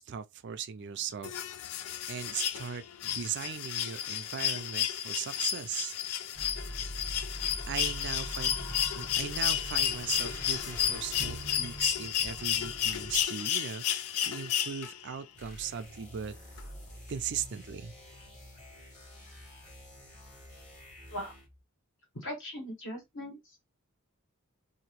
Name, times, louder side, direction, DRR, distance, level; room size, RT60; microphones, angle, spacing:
voice 1, 0.0-1.4 2.1-5.9 7.7-8.6 8.9-16.4 17.1-17.9, right 8 dB, 50° right, 0.4 m, -38 dB
sound 1, 1.2-15.2 16.6-16.7, left 10 dB, 80° left, 0.4 m, -32 dB
sound 2, 6.3-13.2, equal, 10° left, 0.8 m, -42 dB
sound 3, 15.3-21.6, left 1 dB, 30° left, 1.4 m, -49 dB
voice 2, 22.1-23.5, equal, 55° left, 1.5 m, -39 dB
2.9 x 2.6 x 2.9 m
head